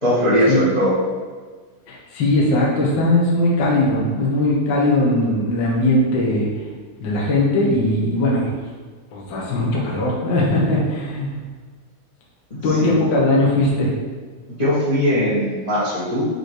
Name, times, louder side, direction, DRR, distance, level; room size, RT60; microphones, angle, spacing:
voice 1, 0.0-1.0 12.8-12.9 14.6-16.3, equal, 50° left, -10 dB, 0.4 m, -19 dB
voice 2, 1.9-6.5 7.0-8.5 9.1-11.4 12.6-13.9, left 1 dB, 75° left, -4 dB, 1.0 m, -19 dB
7.5 x 3.3 x 4.6 m, 1.5 s
omnidirectional pair, 4.3 m